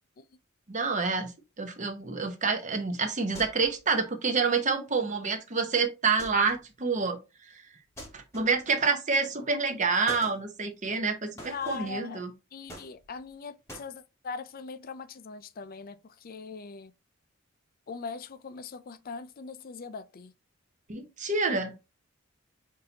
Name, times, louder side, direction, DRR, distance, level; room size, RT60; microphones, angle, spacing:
voice 1, 0.7-1.3 1.6-7.2 8.1-12.3 20.9-21.7, right 4 dB, 40° right, 0.8 m, -28 dB
sound 1, 3.3-3.9 6.2-6.7 8.0-8.8 10.1-10.4 11.4-12.0 12.7-13.3 13.7-13.9, equal, 15° left, 1.3 m, -45 dB
voice 2, 11.5-12.2 12.5-16.9 17.9-20.3, left 5 dB, 45° left, 0.5 m, -41 dB
6.2 x 2.7 x 2.8 m
head